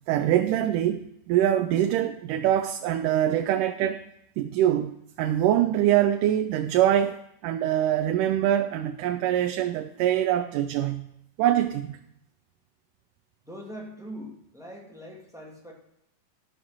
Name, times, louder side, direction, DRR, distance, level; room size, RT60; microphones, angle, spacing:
voice 1, 0.1-1.0 1.3-4.0 4.4-11.1 11.4-12.0, right 11 dB, 85° right, 6 dB, 2.1 m, -24 dB
voice 2, 13.4-15.7, equal, ahead, -2 dB, 0.9 m, -42 dB
13.0 x 4.7 x 6.1 m, 0.79 s
omnidirectional pair, 3.7 m